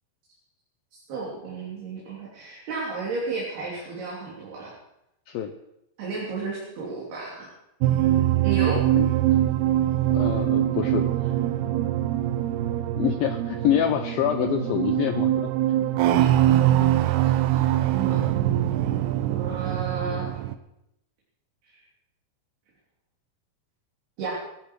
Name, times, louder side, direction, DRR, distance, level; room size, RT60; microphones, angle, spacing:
voice 1, 1.1-4.7 6.0-7.5 8.4-8.8 16.2-16.5 17.5-18.2 19.3-20.3 21.7-21.8 24.2-24.4, right 4 dB, 60° right, -5 dB, 5.3 m, -33 dB
sound 1, 7.8-20.6, right 13 dB, 80° right, 2.4 m, -23 dB
voice 2, 8.7-9.1 10.1-11.3 13.0-15.5 16.1-16.2 16.8-17.2, left 10 dB, 85° left, 7 dB, 2.1 m, -27 dB
19.5 x 13.5 x 4.8 m, 0.84 s
omnidirectional pair, 5.2 m